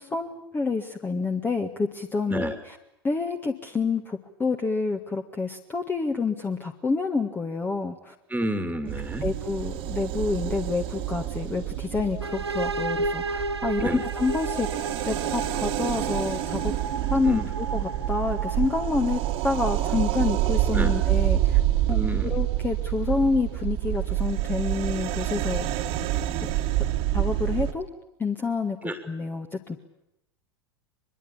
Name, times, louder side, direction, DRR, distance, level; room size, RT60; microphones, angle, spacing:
voice 1, 0.0-2.8 3.0-8.1 9.2-16.7 17.1-21.6 21.9-25.7 27.1-27.9 28.2-29.8, left 4 dB, 15° left, 5 dB, 1.8 m, -28 dB
voice 2, 8.3-9.3 13.8-14.0 17.2-17.4 20.7-20.9 21.9-22.3 28.8-29.0, right 1 dB, 5° right, 8 dB, 2.5 m, -30 dB
sound 1, 8.9-27.7, right 14 dB, 45° right, 2.1 m, -27 dB
sound 2, 12.2-19.9, right 3 dB, 85° right, 0.9 m, -33 dB
24.0 x 22.5 x 8.9 m, 0.83 s
figure-of-eight pair, 85°, 13 cm